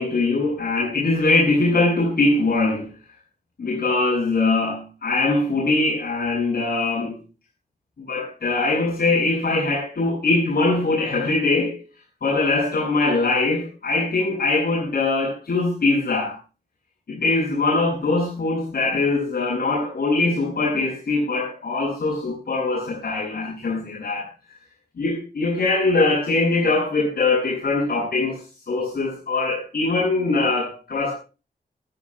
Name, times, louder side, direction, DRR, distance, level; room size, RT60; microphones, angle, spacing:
voice 1, 0.0-2.9 3.6-7.1 8.1-11.8 12.2-16.4 17.1-24.3 25.0-28.4 28.7-31.1, left 3 dB, 70° left, -5 dB, 7.5 m, -22 dB
24.5 x 14.0 x 2.3 m, 0.34 s
wide cardioid pair, 125°, 16 cm